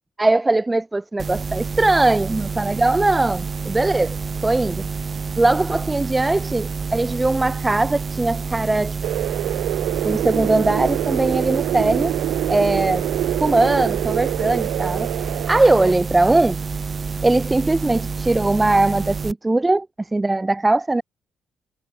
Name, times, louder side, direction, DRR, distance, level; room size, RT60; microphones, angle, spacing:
voice 1, 0.2-4.2 4.4-4.9 5.4-9.0 10.0-12.1 12.5-13.0 13.4-15.1 15.5-16.6 17.2-19.9 20.1-21.0, right 2 dB, 15° right, 1.7 m, -20 dB
sound 1, 1.2-19.3, right 5 dB, 35° right, 3.1 m, -28 dB
sound 2, 9.0-15.9, right 14 dB, 85° right, 1.1 m, -25 dB
cardioid pair, 90°, 0 cm